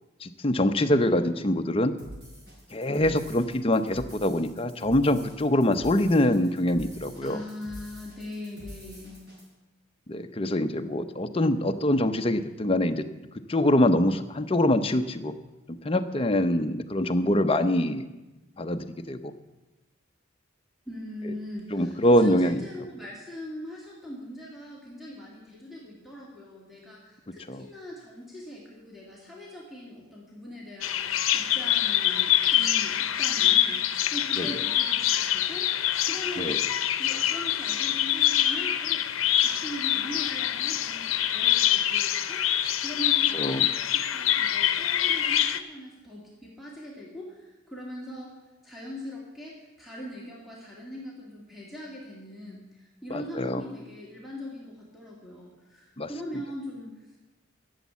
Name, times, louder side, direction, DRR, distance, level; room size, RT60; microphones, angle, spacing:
voice 1, 0.2-1.9 2.7-7.4 10.1-13.0 13.5-15.3 15.8-18.0 18.6-19.3 21.7-22.6 27.5-27.6 34.4-34.5 36.4-36.6 43.3-43.6 53.1-53.6 56.0-56.1, left 1 dB, 25° left, 8 dB, 0.6 m, -24 dB
sound 1, 2.0-9.4, equal, 55° right, 5.7 m, -46 dB
voice 2, 7.2-9.2 20.9-36.7 37.0-39.0 39.4-42.4 42.8-48.4 48.6-57.2, equal, ahead, -5 dB, 2.3 m, -41 dB
Bird vocalization bird call bird song, 30.8-45.6, left 11 dB, 85° left, 0.7 m, -25 dB
13.0 x 7.2 x 8.2 m, 1.1 s
head